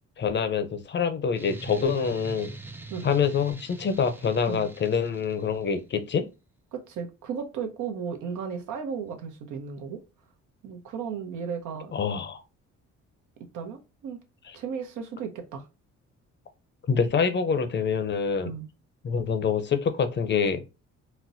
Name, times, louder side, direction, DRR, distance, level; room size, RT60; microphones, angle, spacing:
voice 1, 0.2-2.5 3.0-6.3 11.9-12.4 14.5-14.6 16.9-18.5 19.0-20.6, left 6 dB, 35° left, 0.6 m, -26 dB
sound 1, 1.3-5.8, right 3 dB, 5° right, 0.4 m, -42 dB
voice 2, 6.7-10.0 10.6-11.9 13.5-14.2 14.5-15.7 18.4-18.7, right 6 dB, 80° right, 0.8 m, -35 dB
4.1 x 2.1 x 2.5 m
cardioid pair, 90°, 30 cm